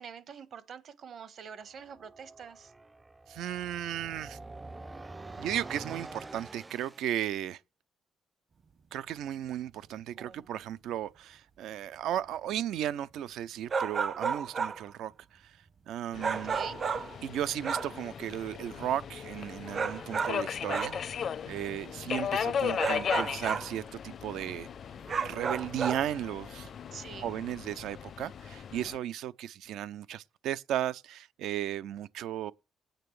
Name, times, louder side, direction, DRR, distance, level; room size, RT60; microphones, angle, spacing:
voice 1, 0.0-2.7 10.2-10.6 16.4-16.8 26.9-27.3, right 7 dB, 60° right, 1.3 m, -46 dB
sound 1, 1.7-7.1, right 2 dB, 20° right, 0.5 m, -46 dB
voice 2, 3.3-4.4 5.4-7.6 8.9-15.5 15.9-16.6 17.2-24.7 25.2-26.7 27.2-32.5, right 11 dB, 85° right, 0.5 m, -35 dB
sound 2, 13.7-14.9 16.2-17.2 17.6-18.0 19.7-21.0 22.8-23.8 25.1-26.1, right 6 dB, 45° right, 0.9 m, -32 dB
Subway metro underground, 16.1-29.0, left 8 dB, 55° left, 0.5 m, -37 dB
19.5 x 9.0 x 3.2 m
cardioid pair, 90°, 0 cm